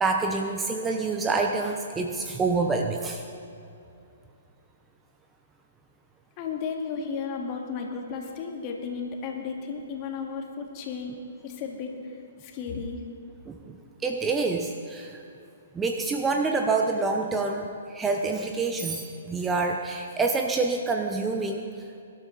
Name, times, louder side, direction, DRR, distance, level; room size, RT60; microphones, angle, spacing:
voice 1, 0.0-3.2 13.5-13.8 14.0-15.2 15.7-21.6, right 3 dB, 15° right, 3 dB, 0.9 m, -27 dB
voice 2, 6.4-13.0, left 5 dB, 35° left, 2 dB, 2.1 m, -34 dB
22.5 x 12.0 x 4.1 m, 2.6 s
figure-of-eight pair, 120°, 0 cm